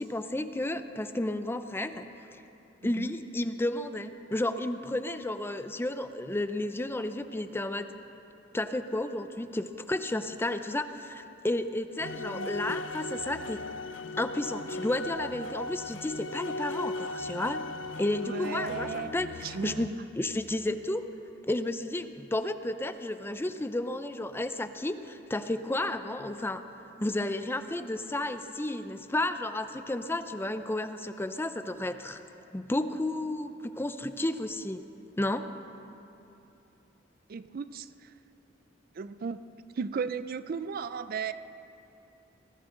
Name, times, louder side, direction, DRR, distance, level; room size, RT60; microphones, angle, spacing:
voice 1, 0.0-2.4 2.8-7.9 8.5-13.6 14.2-17.6 18.0-19.9 20.2-21.0 21.4-26.6 27.0-32.2 32.5-34.8 35.2-35.5, left 1 dB, 10° left, 9 dB, 0.5 m, -32 dB
sound 1, 12.0-19.9, left 2 dB, 80° left, 0.5 m, -37 dB
voice 2, 18.2-19.1 19.4-20.0 37.3-38.1 39.0-39.4 39.8-41.3, right 5 dB, 50° right, 13 dB, 0.4 m, -35 dB
20.0 x 16.0 x 3.8 m, 2.9 s
head